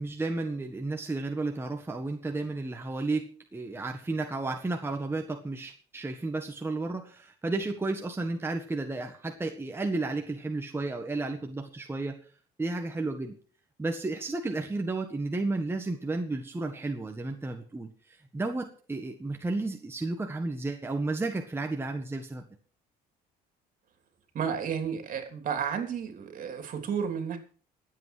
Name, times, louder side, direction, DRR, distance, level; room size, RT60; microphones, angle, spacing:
voice 1, 0.0-12.2 12.6-13.3 13.8-22.4, right 2 dB, 15° right, 3 dB, 1.6 m, -32 dB
voice 2, 24.3-27.4, right 7 dB, 55° right, 6 dB, 3.4 m, -32 dB
22.5 x 8.3 x 4.8 m, 0.43 s
cardioid pair, 110°, 17 cm